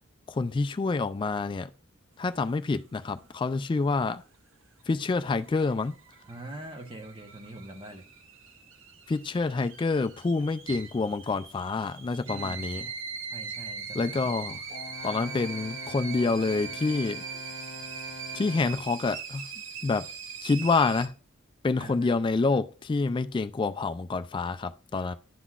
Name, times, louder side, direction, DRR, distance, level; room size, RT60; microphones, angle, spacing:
voice 1, 0.3-1.7 2.2-4.2 4.9-5.9 9.1-12.9 13.9-14.6 15.0-17.2 18.3-19.4 19.8-20.1 20.4-21.1 21.6-25.2, left 3 dB, 25° left, 0.3 m, -27 dB
sound 1, 4.8-21.1, right 5 dB, 75° right, 0.8 m, -41 dB
voice 2, 6.3-8.1 12.3-12.7 13.3-14.4 21.8-22.2 25.0-25.1, right 1 dB, 25° right, 0.9 m, -43 dB
Brass instrument, 14.7-18.9, left 1 dB, 55° right, 1.9 m, -44 dB
11.0 x 3.9 x 2.4 m
head